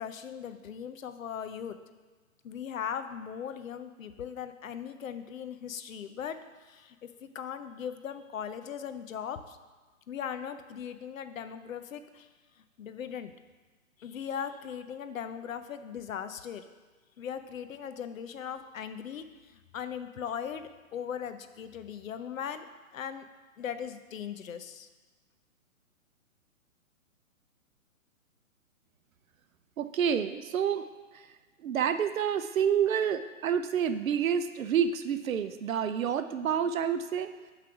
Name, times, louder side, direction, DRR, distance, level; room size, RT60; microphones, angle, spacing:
voice 1, 0.0-1.8 2.4-6.4 6.7-9.6 10.1-12.3 12.8-13.3 14.0-16.6 17.2-19.2 19.7-22.7 22.9-23.2 23.6-24.9, left 8 dB, 70° left, 10 dB, 0.7 m, -39 dB
voice 2, 29.8-30.9 31.1-31.3 31.6-37.3, right 8 dB, 70° right, 10 dB, 0.7 m, -28 dB
8.6 x 3.4 x 5.8 m, 1.3 s
hypercardioid pair, 150°, 42 cm